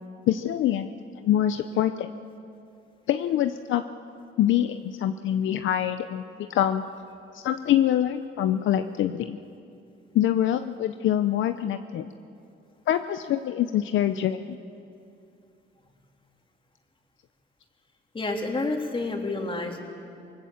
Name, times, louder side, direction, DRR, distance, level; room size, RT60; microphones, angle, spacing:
voice 1, 0.3-0.9 1.2-2.1 3.1-3.8 4.4-6.2 6.5-6.8 7.3-9.4 10.1-12.1 12.9-14.6, left 11 dB, 75° left, 9 dB, 0.7 m, -25 dB
voice 2, 18.1-19.8, left 2 dB, 25° left, 1 dB, 3.3 m, -29 dB
25.0 x 19.5 x 7.2 m, 2.5 s
cardioid pair, 90°, 20 cm